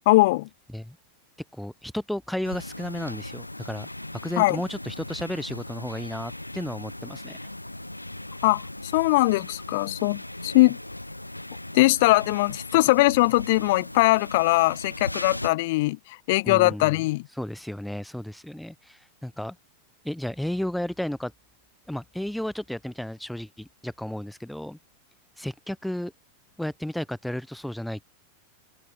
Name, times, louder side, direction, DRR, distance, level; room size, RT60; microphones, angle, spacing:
voice 1, 0.1-0.5 4.4-4.6 8.4-8.6 8.9-10.8 11.7-16.0 16.3-17.2, left 20 dB, 50° left, 0.5 m, -21 dB
voice 2, 1.5-3.9 4.2-7.4 16.4-17.0 17.4-19.6 20.0-21.3 21.9-24.8 25.4-26.1 26.6-28.0, left 1 dB, ahead, 2.1 m, -33 dB
sound 1, 2.4-15.5, left 1 dB, 85° left, 4.6 m, -38 dB
figure-of-eight pair, 90°, 0 cm